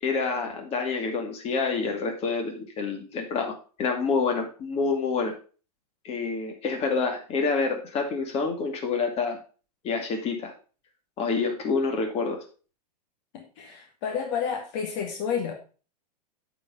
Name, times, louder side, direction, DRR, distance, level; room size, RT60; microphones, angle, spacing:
voice 1, 0.0-5.3 6.0-9.4 9.8-10.5 11.2-12.4, left 4 dB, 30° left, 3 dB, 2.4 m, -27 dB
voice 2, 13.3-15.5, left 7 dB, 50° left, 2 dB, 2.0 m, -30 dB
8.7 x 5.1 x 5.4 m, 0.36 s
hypercardioid pair, 115°, 21 cm